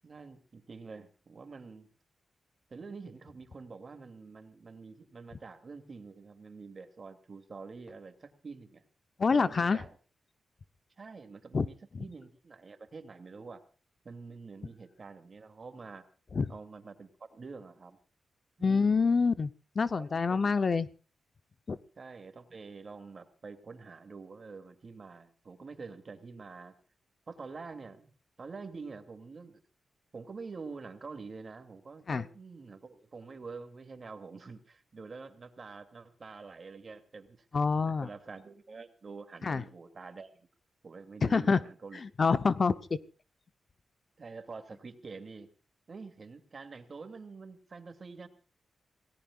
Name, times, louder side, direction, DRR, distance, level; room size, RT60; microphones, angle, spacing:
voice 1, 0.0-1.9 2.7-8.8 9.3-10.0 11.0-13.6 14.0-16.0 16.5-18.0 18.6-19.1 20.0-20.5 22.0-26.7 27.3-28.1 28.4-29.6 30.1-37.5 37.8-40.5 40.8-42.0 44.2-45.5 45.9-48.3, right 4 dB, 35° right, 8 dB, 2.6 m, -47 dB
voice 2, 9.2-9.8 11.5-11.7 11.9-12.0 16.3-16.5 18.6-19.5 19.8-20.9 21.7-21.8 32.1-32.2 37.5-38.1 39.4-39.6 41.2-41.6 41.9-42.8, left 4 dB, 35° left, 12 dB, 0.7 m, -26 dB
28.0 x 18.5 x 2.4 m, 0.37 s
wide cardioid pair, 175°, 0 cm